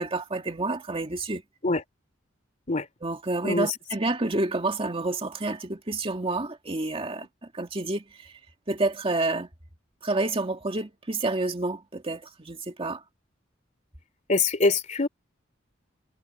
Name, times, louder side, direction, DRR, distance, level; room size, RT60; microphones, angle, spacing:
voice 1, 0.0-1.4 3.0-7.3 7.5-8.3 8.7-9.5 10.0-13.0, right 2 dB, 30° right, 2.1 m, -29 dB
voice 2, 14.3-15.1, left 3 dB, 40° left, 2.9 m, -23 dB
head